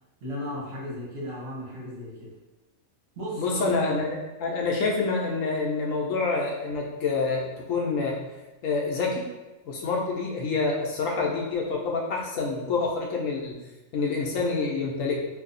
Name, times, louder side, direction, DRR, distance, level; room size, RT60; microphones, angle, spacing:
voice 1, 0.2-2.3 3.2-3.9, equal, 50° right, -5 dB, 1.2 m, -35 dB
voice 2, 3.4-8.2 8.6-9.3 9.7-13.6 13.9-15.2, left 4 dB, 75° left, -1 dB, 0.9 m, -27 dB
2.6 x 2.6 x 3.9 m, 1.1 s
omnidirectional pair, 1.4 m